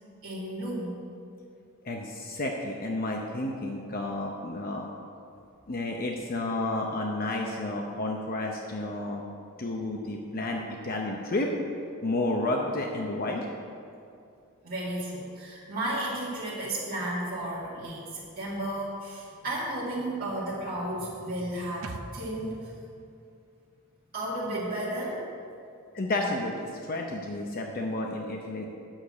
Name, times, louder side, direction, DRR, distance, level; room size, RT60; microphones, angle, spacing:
voice 1, 0.2-1.0 14.6-22.7 24.1-25.2, right 1 dB, 45° right, -9 dB, 1.7 m, -33 dB
voice 2, 1.8-4.9 5.7-9.2 9.6-11.5 12.0-13.5 25.9-28.7, left 2 dB, 45° left, 1 dB, 0.8 m, -31 dB
sound 1, 21.8-25.3 25.6-25.7, right 3 dB, 70° right, 0.6 m, -48 dB
9.0 x 6.7 x 7.1 m, 2.5 s
head